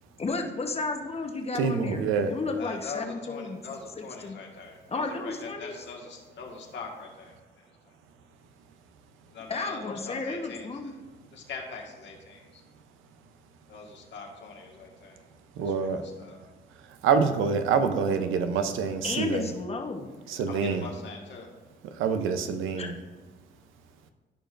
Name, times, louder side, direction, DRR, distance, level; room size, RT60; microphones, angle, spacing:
voice 1, 0.2-3.6 3.9-4.4 4.9-5.8 9.5-10.9 19.0-20.1 22.8-22.9, left 3 dB, 30° left, 4 dB, 1.0 m, -33 dB
voice 2, 1.5-2.3 15.6-16.0 16.8-19.5 20.3-20.9 21.9-22.9, right 5 dB, 90° right, 8 dB, 0.7 m, -26 dB
voice 3, 2.6-7.3 9.3-10.9 11.3-12.6 13.7-15.2 15.6-15.9 16.2-16.4 20.5-21.5, left 4 dB, 65° left, 0 dB, 1.7 m, -42 dB
15.0 x 5.1 x 2.6 m, 1.3 s
cardioid pair, 90°, 20 cm